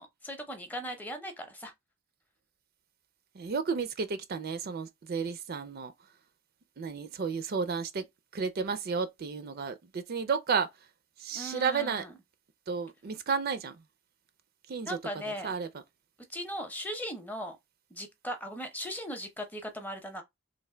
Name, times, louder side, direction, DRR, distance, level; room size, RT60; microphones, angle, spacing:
voice 1, 0.0-1.7 11.3-12.1 14.9-15.5 16.3-17.6 17.9-20.2, equal, 10° left, 0.6 m, -38 dB
voice 2, 3.3-5.9 6.8-8.1 8.3-10.7 11.2-12.0 12.7-13.8 14.7-15.0 15.4-15.7, right 5 dB, 45° right, 0.4 m, -32 dB
3.2 x 2.5 x 3.7 m
head